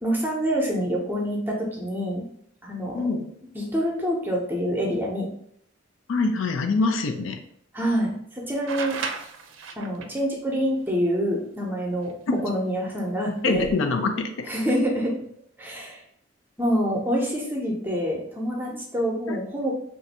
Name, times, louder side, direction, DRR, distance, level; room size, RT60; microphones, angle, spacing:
voice 1, 0.0-2.2 2.6-3.0 3.5-5.3 7.7-9.0 9.8-12.1 12.4-13.7 14.5-15.1 15.6-16.0 16.6-19.7, equal, 10° right, -2 dB, 0.6 m, -26 dB
voice 2, 2.9-3.3 6.1-7.4 12.3-12.4 13.4-14.5 19.3-19.4, left 3 dB, 80° left, 6 dB, 0.4 m, -24 dB
sound 1, 8.7-10.2 12.1-12.2 13.4-13.7, right 5 dB, 75° right, 0.4 m, -34 dB
2.6 x 2.5 x 4.1 m, 0.68 s
head